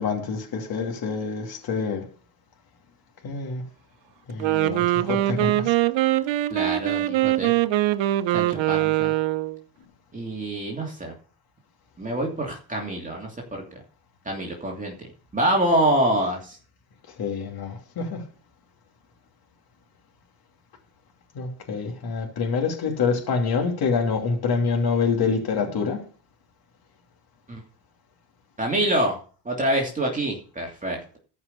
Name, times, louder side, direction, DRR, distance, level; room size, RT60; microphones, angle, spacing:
voice 1, 0.0-2.1 3.2-3.6 4.3-5.8 17.1-18.2 21.3-26.0, left 5 dB, 50° left, 2.9 m, -26 dB
Wind instrument woodwind instrument, 4.3-9.6, right 15 dB, 70° right, 0.9 m, -22 dB
voice 2, 6.5-7.5 8.3-9.1 10.1-11.1 12.0-13.6 14.2-14.9 15.3-16.6 27.5-27.6 28.6-31.2, right 1 dB, 15° right, 2.8 m, -26 dB
13.5 x 5.7 x 6.8 m
cardioid pair, 120°, 46 cm